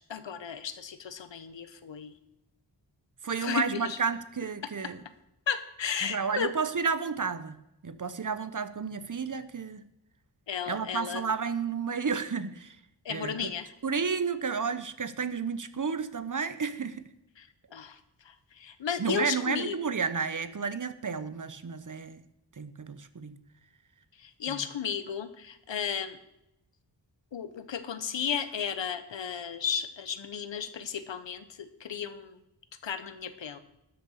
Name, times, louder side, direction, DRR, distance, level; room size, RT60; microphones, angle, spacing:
voice 1, 0.1-2.1 3.4-4.0 5.5-6.5 10.5-11.2 13.0-13.7 17.4-17.5 17.7-18.0 18.3-19.7 24.2-26.2 27.3-32.4 32.8-33.6, left 7 dB, 90° left, 12 dB, 1.1 m, -34 dB
voice 2, 3.2-5.0 6.0-7.6 7.8-9.8 10.7-12.8 13.1-13.5 13.8-17.1 19.0-22.2 22.6-23.4 24.5-24.6, right 5 dB, 45° right, 13 dB, 0.9 m, -31 dB
12.5 x 6.7 x 6.5 m, 0.86 s
wide cardioid pair, 70°, 43 cm